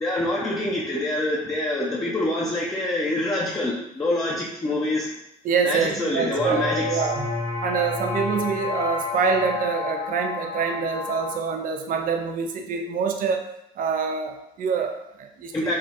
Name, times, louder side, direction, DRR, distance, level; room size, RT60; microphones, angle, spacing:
voice 1, 0.0-5.1 5.6-7.0 15.5-15.8, left 1 dB, 20° left, -4 dB, 0.8 m, -26 dB
voice 2, 5.4-7.3 7.6-13.4 13.8-15.8, right 6 dB, 55° right, 4 dB, 0.6 m, -26 dB
sound 1, 6.3-11.4, left 4 dB, 90° left, 1.7 m, -30 dB
4.9 x 2.3 x 4.2 m, 0.81 s
cardioid pair, 110°, 17 cm